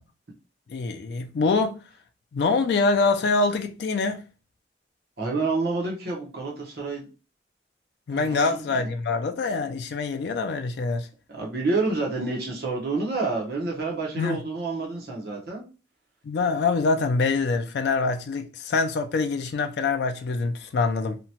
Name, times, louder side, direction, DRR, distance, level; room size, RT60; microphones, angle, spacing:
voice 1, 0.7-1.8 2.3-4.2 8.1-11.1 14.2-14.4 16.2-21.2, left 4 dB, 70° left, 0.3 m, -25 dB
voice 2, 5.2-7.1 8.1-8.8 11.3-15.6, right 3 dB, 60° right, 0.8 m, -28 dB
2.8 x 2.1 x 2.8 m
head